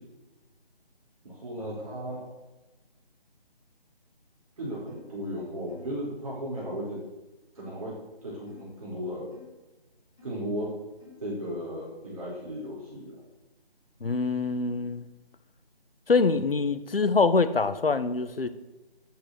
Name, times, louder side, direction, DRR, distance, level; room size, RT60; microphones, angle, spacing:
voice 1, 1.2-2.3 4.6-7.0 7.5-7.9 8.2-9.4 10.2-10.8 11.2-13.2, equal, 35° right, -6 dB, 4.8 m, -35 dB
sound 1, 4.9-5.1 5.7-6.0 6.6-6.8 7.6-7.9 8.5-8.7 9.3-9.5 10.2-10.4 11.0-11.3, left 7 dB, 35° left, 5.6 m, -53 dB
voice 2, 14.0-15.1 16.1-18.5, left 4 dB, 70° left, 12 dB, 1.3 m, -24 dB
10.0 x 9.3 x 8.2 m, 1.1 s
figure-of-eight pair, 170°, 30 cm